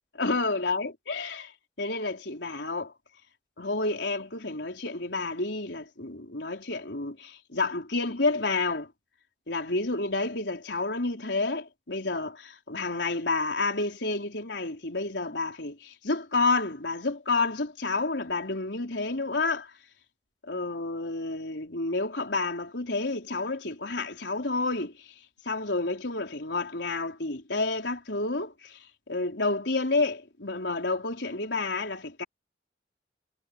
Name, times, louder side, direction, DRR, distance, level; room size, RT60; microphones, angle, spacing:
voice 1, 0.2-1.5 1.8-2.9 3.6-8.9 9.5-19.7 20.4-25.1 25.4-32.2, left 3 dB, 85° left, 4.1 m, -30 dB
head